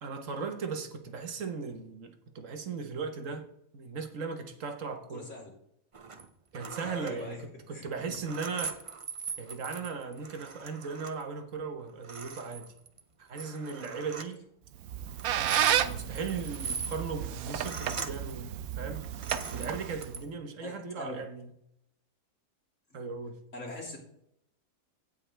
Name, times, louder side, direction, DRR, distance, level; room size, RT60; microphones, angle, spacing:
voice 1, 0.0-3.5 3.7-5.3 6.5-8.8 9.4-12.6 13.2-14.5 15.4-19.1 19.5-21.5 22.9-23.4, right 5 dB, 60° right, 1.5 m, -37 dB
voice 2, 5.1-5.5 6.8-7.5 7.7-8.1 15.3-15.4 20.6-21.2 23.5-24.0, left 2 dB, 55° left, 3.7 m, -42 dB
sound 1, 5.9-6.3 6.5-7.2 7.9-11.2 11.5-11.6 11.9-13.0 13.4-14.3 15.1-18.3 18.9-20.3, right 5 dB, 40° right, 0.4 m, -41 dB
Squeak, 14.7-20.2, right 11 dB, 75° right, 1.1 m, -32 dB
16.0 x 5.5 x 3.4 m
omnidirectional pair, 1.6 m